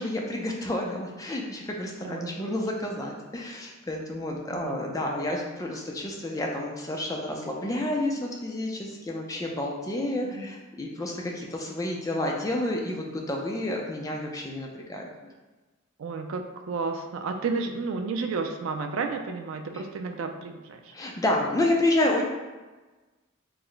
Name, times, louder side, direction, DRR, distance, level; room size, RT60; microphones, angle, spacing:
voice 1, 0.0-15.1 20.9-22.2, left 1 dB, 15° left, 0 dB, 0.3 m, -29 dB
voice 2, 2.0-2.5 4.5-4.8 10.3-10.5 16.0-20.9, right 4 dB, 65° right, 5 dB, 0.3 m, -32 dB
3.2 x 2.0 x 3.8 m, 1.2 s
head